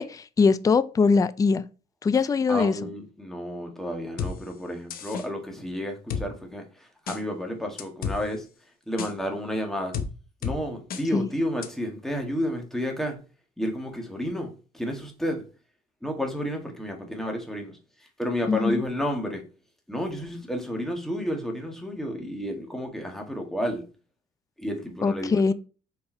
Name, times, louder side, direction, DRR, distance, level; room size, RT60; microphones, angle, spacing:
voice 1, 0.0-1.6 2.0-2.7 11.1-11.3 18.5-18.8 25.0-25.5, left 4 dB, 20° left, 0.4 m, -22 dB
voice 2, 2.5-8.4 8.9-9.9 10.4-13.2 13.6-15.4 16.0-19.4 19.9-23.8 24.6-25.5, equal, ahead, 1.7 m, -31 dB
sound 1, 4.2-4.3 4.9-5.3 6.1-6.2 7.1-7.2 7.8-8.2 9.0-9.1 9.9-10.1 10.4-10.6 10.9-11.0 11.6-11.7, left 6 dB, 60° left, 1.0 m, -30 dB
5.1 x 4.5 x 4.4 m
cardioid pair, 110°, 17 cm